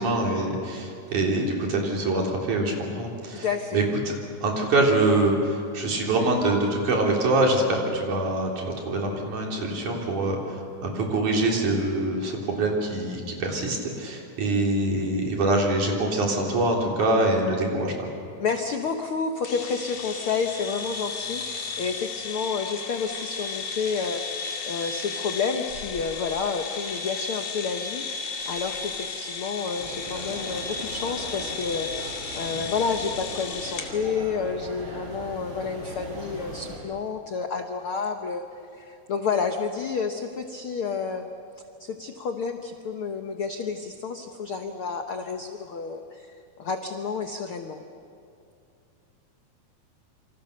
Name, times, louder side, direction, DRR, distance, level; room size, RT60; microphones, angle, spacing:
voice 1, 0.0-3.5 3.7-4.2 4.4-18.1, right 2 dB, 55° right, -1 dB, 5.0 m, -24 dB
voice 2, 3.4-3.8 18.4-32.1 32.3-38.4 38.7-41.3 41.8-47.8, left 5 dB, 80° left, 5 dB, 1.2 m, -30 dB
sound 1, 19.4-33.9, left 5 dB, 60° left, 3.6 m, -34 dB
sound 2, 29.8-36.8, right 1 dB, 35° right, 6.0 m, -39 dB
28.0 x 25.5 x 6.7 m, 2.5 s
omnidirectional pair, 4.2 m